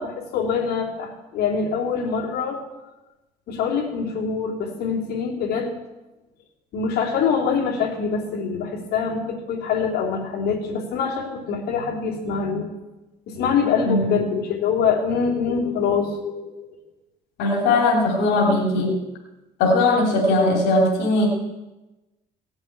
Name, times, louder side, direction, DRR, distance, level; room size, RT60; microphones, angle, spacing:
voice 1, 0.0-2.6 3.5-5.7 6.7-12.7 13.3-16.6, left 6 dB, 70° left, -2 dB, 3.2 m, -24 dB
voice 2, 17.4-19.0 19.6-21.3, left 2 dB, 90° left, 0 dB, 3.0 m, -19 dB
17.5 x 8.0 x 8.7 m, 1.1 s
cardioid pair, 110°, 17 cm